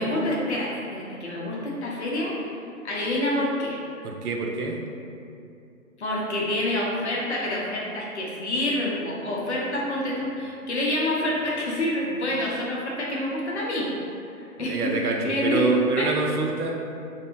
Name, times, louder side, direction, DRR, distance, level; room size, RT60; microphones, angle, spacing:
voice 1, 0.0-2.4 2.8-3.8 6.0-13.9 14.4-15.7 16.0-16.1, left 1 dB, 50° left, -4 dB, 0.6 m, -27 dB
voice 2, 4.0-4.8 14.6-16.8, right 3 dB, 85° right, 2 dB, 0.6 m, -25 dB
2.7 x 2.5 x 2.4 m, 2.6 s
hypercardioid pair, 150°, 44 cm